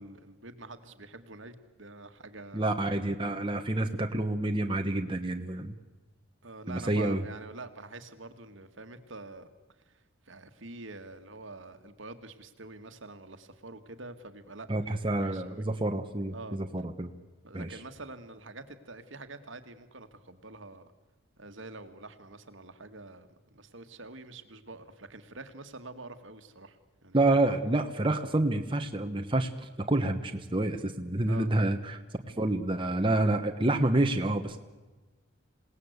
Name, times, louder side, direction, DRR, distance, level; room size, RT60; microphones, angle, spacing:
voice 1, 0.0-2.7 3.2-3.4 6.4-9.5 9.8-14.7 15.0-15.6 16.3-16.6 17.4-20.8 21.4-27.2 31.3-31.5, right 3 dB, 70° right, 8 dB, 1.9 m, -46 dB
voice 2, 2.5-5.7 6.7-7.2 14.7-17.1 17.5-17.8 27.1-32.0 32.4-34.6, right 2 dB, 25° right, 5 dB, 1.2 m, -28 dB
27.5 x 18.0 x 8.2 m, 1.2 s
head